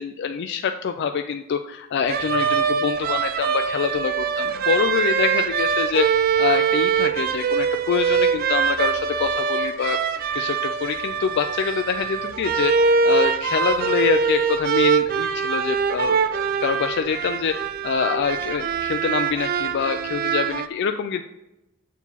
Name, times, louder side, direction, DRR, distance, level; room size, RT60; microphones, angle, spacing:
voice 1, 0.0-6.1 6.4-10.0 10.3-21.2, left 6 dB, 55° left, 6 dB, 0.3 m, -25 dB
sound 1, 2.1-20.7, right 6 dB, 45° right, 0.4 m, -23 dB
7.1 x 4.5 x 4.0 m, 0.93 s
head